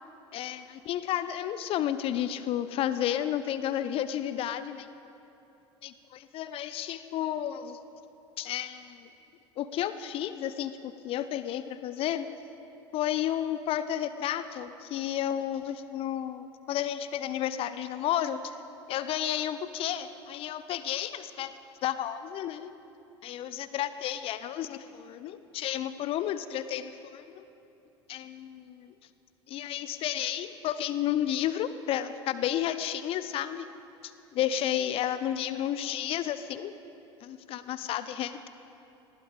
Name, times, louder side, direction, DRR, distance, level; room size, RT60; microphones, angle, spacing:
voice 1, 0.3-4.9 5.8-7.8 8.4-9.0 9.6-12.3 12.9-18.5 18.9-21.5 21.8-22.7 23.2-27.4 28.1-28.9 29.5-33.7 34.3-36.7 37.2-38.5, left 11 dB, 40° left, 13 dB, 0.6 m, -32 dB
19.5 x 15.5 x 3.8 m, 3.0 s
figure-of-eight pair, 70°, 15 cm